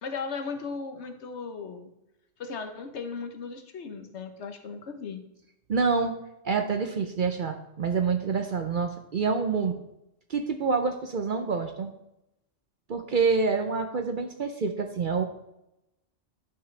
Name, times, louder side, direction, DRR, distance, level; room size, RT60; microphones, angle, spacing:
voice 1, 0.0-1.9 2.4-5.2, left 5 dB, 65° left, 6 dB, 1.2 m, -36 dB
voice 2, 5.7-6.1 6.4-9.8 10.3-11.9 12.9-15.2, right 5 dB, 55° right, 6 dB, 0.6 m, -27 dB
10.5 x 5.8 x 3.2 m, 0.86 s
omnidirectional pair, 1.3 m